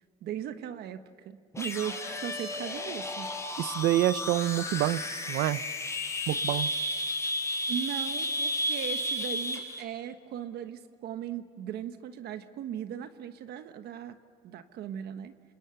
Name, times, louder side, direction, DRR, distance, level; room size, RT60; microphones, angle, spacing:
voice 1, 0.2-3.3 7.7-14.2 14.4-15.3, right 10 dB, 70° right, 1.2 m, -38 dB
sound 1, 1.5-9.8, left 1 dB, 15° left, 5.5 m, -33 dB
voice 2, 3.6-5.0 5.3-5.6 6.3-6.7, right 15 dB, 85° right, 0.7 m, -27 dB
28.0 x 27.0 x 7.0 m
cardioid pair, 110°, 17 cm